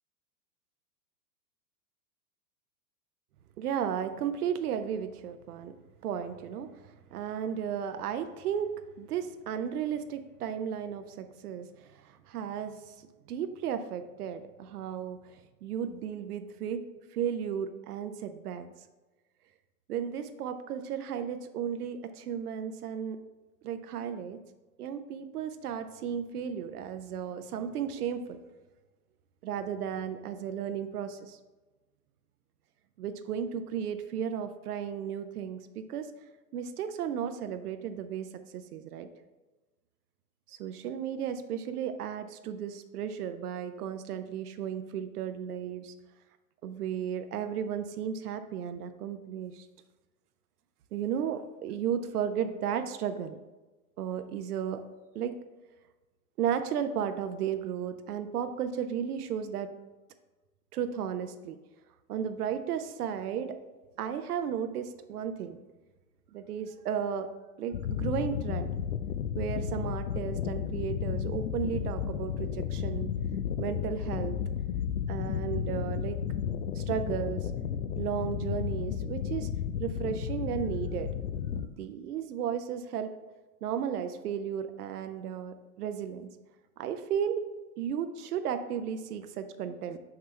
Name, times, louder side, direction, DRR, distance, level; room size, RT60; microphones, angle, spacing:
voice 1, 3.6-5.7 6.0-8.7 9.0-12.9 13.3-16.8 17.1-18.7 19.9-23.2 23.6-24.4 24.8-28.4 29.4-31.4 33.0-36.1 36.5-38.3 38.5-39.1 40.5-45.9 46.6-49.7 50.9-53.4 54.0-54.8 55.1-55.3 56.4-59.7 60.7-61.6 62.1-63.6 64.0-65.6 66.3-67.3 67.6-68.7 69.4-73.1 73.6-74.4 75.1-76.2 76.7-77.5 78.0-79.5 79.8-81.1 81.8-83.1 83.6-86.3 86.8-87.4 87.8-90.0, right 8 dB, 75° right, 9 dB, 0.6 m, -34 dB
sound 1, 67.7-81.7, left 8 dB, 85° left, 0.6 m, -33 dB
5.9 x 5.5 x 3.2 m, 1.2 s
hypercardioid pair, 115°, 46 cm